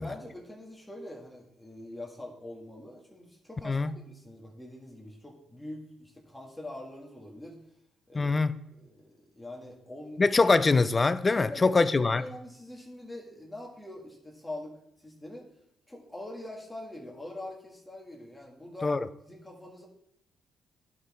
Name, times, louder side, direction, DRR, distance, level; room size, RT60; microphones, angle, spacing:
voice 1, 0.0-7.6 8.1-8.4 8.7-10.2 11.3-15.5 15.9-18.9 19.3-19.9, left 1 dB, 10° left, 1.7 m, -44 dB
voice 2, 8.1-8.5 10.2-12.2 18.8-19.1, left 3 dB, 25° left, 0.5 m, -23 dB
11.0 x 6.0 x 3.6 m
cardioid pair, 90°, 0 cm